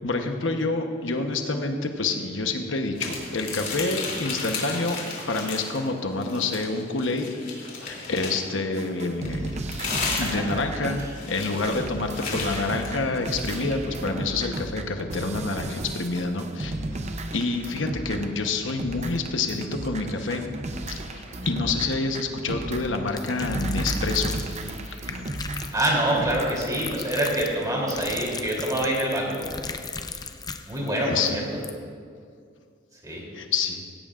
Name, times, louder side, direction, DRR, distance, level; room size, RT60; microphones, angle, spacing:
voice 1, 0.0-5.0 5.3-9.5 10.2-16.7 17.3-20.4 20.9-24.6 24.9-25.4 31.1-31.5 33.3-33.8, left 3 dB, 85° left, 4 dB, 1.1 m, -28 dB
sound 1, 2.9-5.9 6.2-8.5 9.2-13.6, left 4 dB, 45° left, 3.1 m, -33 dB
sound 2, 8.8-26.5, right 2 dB, 35° right, 0.7 m, -34 dB
sound 3, 23.1-30.9 31.3-31.4 31.6-31.7, left 4 dB, 20° left, 0.5 m, -37 dB
voice 2, 25.7-29.5 30.6-31.3 33.0-33.2, right 1 dB, 20° right, -3 dB, 3.2 m, -25 dB
16.5 x 16.0 x 2.5 m, 2.2 s
head